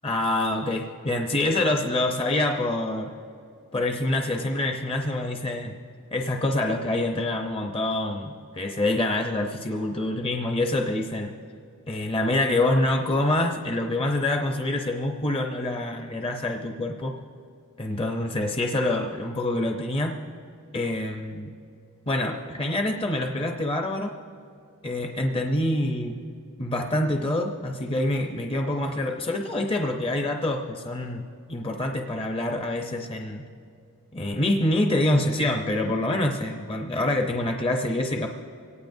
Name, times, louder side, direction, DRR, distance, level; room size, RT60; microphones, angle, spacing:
voice 1, 0.0-3.1 3.7-5.7 6.1-11.3 11.9-17.2 17.8-20.1 20.7-21.5 22.1-24.1 24.8-26.2 26.6-31.2 31.5-33.4 34.1-38.3, left 1 dB, 25° left, 2 dB, 0.7 m, -26 dB
24.5 x 18.0 x 2.7 m, 2.3 s
head